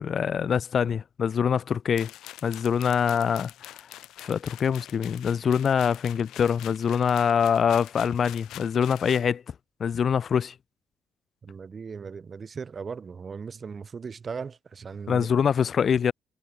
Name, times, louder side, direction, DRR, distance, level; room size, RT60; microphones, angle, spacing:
voice 1, 0.0-2.1 2.4-3.5 4.2-9.4 9.8-10.5 15.1-16.1, left 7 dB, 50° left, 0.8 m, -24 dB
sound 1, 2.0-9.3, left 14 dB, 85° left, 6.8 m, -45 dB
voice 2, 11.4-15.3, right 5 dB, 40° right, 3.5 m, -38 dB
cardioid pair, 90°, 0 cm